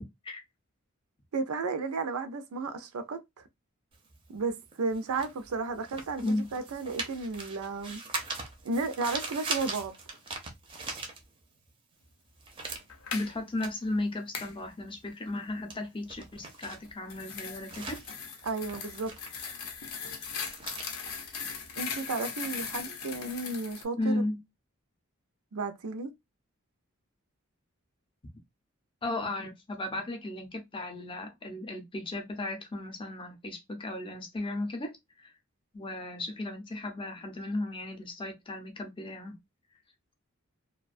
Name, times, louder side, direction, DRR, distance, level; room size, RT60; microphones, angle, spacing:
voice 1, 1.3-3.2 4.3-8.0 8.6-10.0 18.4-19.1 19.4-19.5 21.8-24.2 25.5-26.1, right 3 dB, 85° right, 0.5 m, -33 dB
sound 1, 3.9-11.7 12.0-22.1, right 3 dB, 25° right, 0.5 m, -41 dB
sound 2, 12.9-13.3 14.3-14.5 16.7-23.8, left 6 dB, 85° left, 0.6 m, -39 dB
voice 2, 13.1-18.0 24.0-24.4 29.0-35.3 35.7-39.4, left 2 dB, 25° left, 0.5 m, -35 dB
2.4 x 2.2 x 2.4 m
head